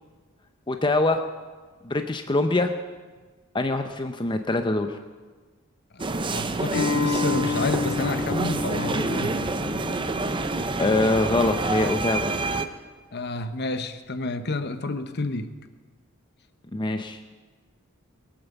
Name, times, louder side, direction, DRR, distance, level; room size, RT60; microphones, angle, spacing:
voice 1, 0.7-1.2 1.8-2.7 3.5-4.9 10.8-12.3 16.7-17.2, left 2 dB, 20° left, 6 dB, 0.6 m, -24 dB
voice 2, 5.9-9.5 13.1-15.5, left 2 dB, 50° left, 10 dB, 0.9 m, -30 dB
sound 1, 6.0-12.7, right 3 dB, 25° right, 0.7 m, -28 dB
Acoustic guitar, 6.7-11.9, left 4 dB, 65° left, 1.8 m, -31 dB
22.0 x 8.9 x 7.1 m, 1.4 s
head